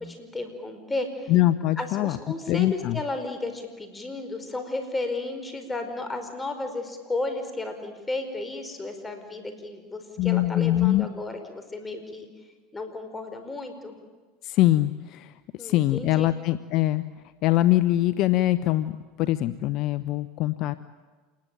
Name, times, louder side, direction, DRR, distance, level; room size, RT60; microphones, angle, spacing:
voice 1, 0.1-1.3 1.8-12.3 12.7-14.0 15.6-16.3, left 2 dB, 15° left, 7 dB, 4.9 m, -33 dB
voice 2, 1.3-2.2 2.5-3.0 10.2-11.1 14.4-15.3 15.6-17.0 17.4-18.9 19.2-20.8, left 15 dB, 55° left, 14 dB, 0.8 m, -23 dB
27.5 x 20.5 x 9.1 m, 1.4 s
supercardioid pair, 100°, 0 cm